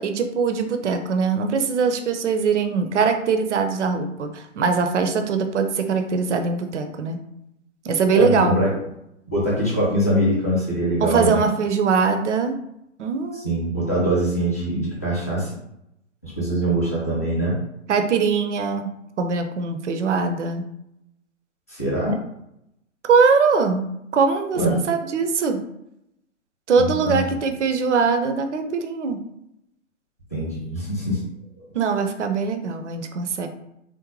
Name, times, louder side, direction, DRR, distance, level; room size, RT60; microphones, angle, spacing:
voice 1, 0.0-7.2 7.8-8.6 11.0-12.6 13.0-13.5 17.9-20.7 22.1-22.2 23.0-24.6 24.9-25.7 26.7-29.2 31.7-33.5, right 5 dB, 65° right, 6 dB, 0.5 m, -22 dB
voice 2, 8.1-8.7 9.3-11.4 13.3-15.5 16.2-17.6 21.7-22.2 24.5-24.8 26.8-27.3 30.3-31.2, right 1 dB, 15° left, -7 dB, 0.4 m, -23 dB
3.8 x 2.0 x 3.0 m, 0.81 s
figure-of-eight pair, 135°, 39 cm